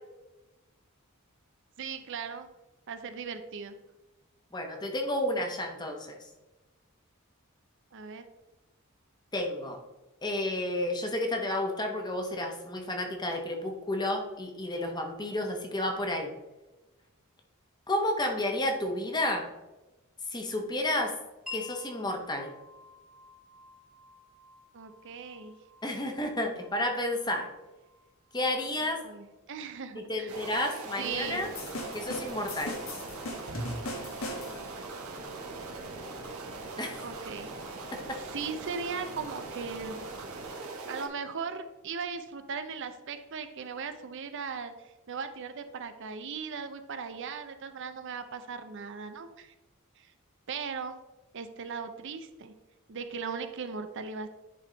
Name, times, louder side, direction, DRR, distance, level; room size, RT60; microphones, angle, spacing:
voice 1, 1.8-2.5 2.9-3.7 7.9-8.2 24.7-25.6 28.7-30.7 31.0-31.4 37.0-37.6 38.1-40.0 40.9-44.7 45.1-49.5 50.0-50.1 50.5-51.0 51.3-52.5 52.9-54.3, right 5 dB, 60° right, 9 dB, 0.5 m, -38 dB
voice 2, 4.5-6.2 9.3-9.8 10.2-16.3 17.9-19.5 20.3-21.1 21.5-22.5 25.8-27.5 28.3-29.0 29.9-31.5 31.9-32.8 36.8-37.0 37.9-38.2, left 1 dB, 20° left, 2 dB, 1.0 m, -31 dB
Wind chime, 21.5-29.1, left 5 dB, ahead, 1.4 m, -50 dB
sound 1, 30.3-41.1, right 3 dB, 80° right, 1.2 m, -41 dB
sound 2, 31.5-34.8, left 1 dB, 70° left, 1.4 m, -38 dB
10.0 x 3.5 x 3.9 m, 1.1 s
head